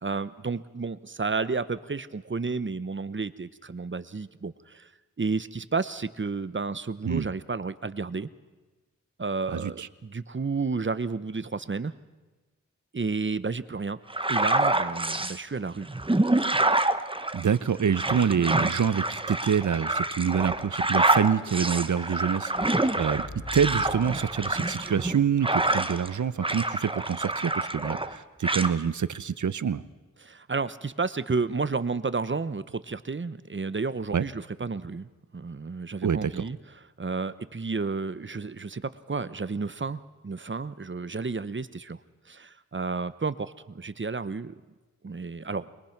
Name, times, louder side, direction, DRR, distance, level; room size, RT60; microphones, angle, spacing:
voice 1, 0.0-4.9 5.2-8.3 9.2-11.9 12.9-14.0 14.3-15.9 30.2-35.1 35.3-36.6 37.0-42.0 42.3-44.5 45.0-45.7, right 4 dB, 40° right, 14 dB, 0.9 m, -31 dB
voice 2, 9.5-9.9 17.3-23.2 23.5-29.8 34.1-34.2 36.0-36.4, right 7 dB, 75° right, 16 dB, 0.8 m, -26 dB
sound 1, 14.1-15.4 15.9-26.1 26.4-28.1 28.4-28.7, right 2 dB, 15° right, 1.1 m, -27 dB
sound 2, 22.8-25.1, left 2 dB, 80° left, 4.5 m, -43 dB
23.0 x 22.0 x 5.9 m, 1.2 s
cardioid pair, 50°, 30 cm